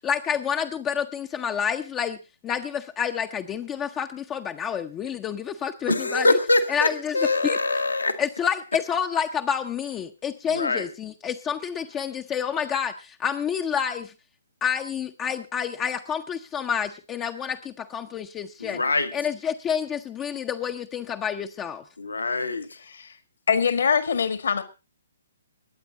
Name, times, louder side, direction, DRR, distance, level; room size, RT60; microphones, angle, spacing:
voice 1, 0.0-2.2 2.4-6.3 6.7-7.6 8.2-14.1 14.6-18.8 19.1-21.8, left 8 dB, 20° left, 6 dB, 0.7 m, -28 dB
voice 2, 5.9-8.2 10.5-10.9 18.6-19.1 22.0-22.7, left 2 dB, 80° left, 9 dB, 1.6 m, -24 dB
voice 3, 22.8-23.1 23.5-24.6, left 6 dB, 60° left, 11 dB, 1.8 m, -23 dB
21.5 x 8.8 x 4.0 m, 0.30 s
figure-of-eight pair, 130°, 0 cm